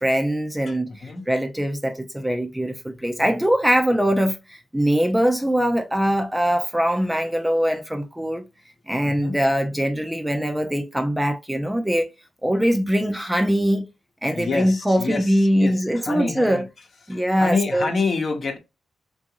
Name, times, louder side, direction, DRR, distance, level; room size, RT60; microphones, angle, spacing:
voice 1, 0.0-8.4 8.9-12.1 12.4-13.8 14.2-16.6 17.1-17.9, equal, 5° right, 0.5 m, -22 dB
voice 2, 0.7-1.3 9.0-9.4 14.3-16.7 17.1-18.6, left 4 dB, 50° left, 0.9 m, -28 dB
3.7 x 2.5 x 2.8 m
wide cardioid pair, 115°, 0 cm